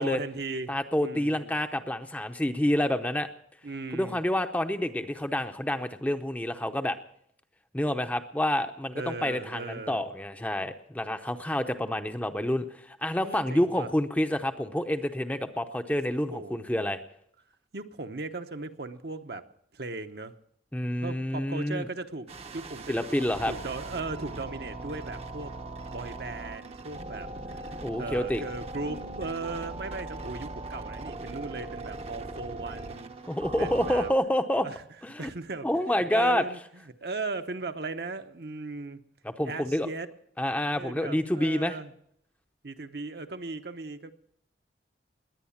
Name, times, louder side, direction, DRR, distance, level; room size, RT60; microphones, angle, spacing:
voice 1, 0.0-0.7 1.0-1.6 3.6-4.2 8.9-10.0 13.2-13.9 16.3-16.6 17.7-19.4 19.7-20.3 21.0-23.0 23.5-25.5 25.9-27.7 28.0-33.1 33.6-34.1 34.6-34.8 35.2-35.7 36.1-39.0 39.4-40.1 40.8-41.9 42.6-44.1, right 3 dB, 55° right, 7 dB, 0.9 m, -37 dB
voice 2, 0.7-3.3 3.9-7.0 7.7-17.0 20.7-21.9 22.9-23.5 27.8-28.4 33.3-34.7 35.0-35.3 35.6-36.4 39.4-39.9 40.4-41.8, left 1 dB, 10° left, 7 dB, 0.7 m, -28 dB
sound 1, 22.3-34.1, right 2 dB, 35° right, 0.8 m, -40 dB
Marimba xylophone, 28.9-31.0, right 4 dB, 80° left, 4.1 m, -53 dB
20.5 x 9.6 x 7.2 m, 0.70 s
head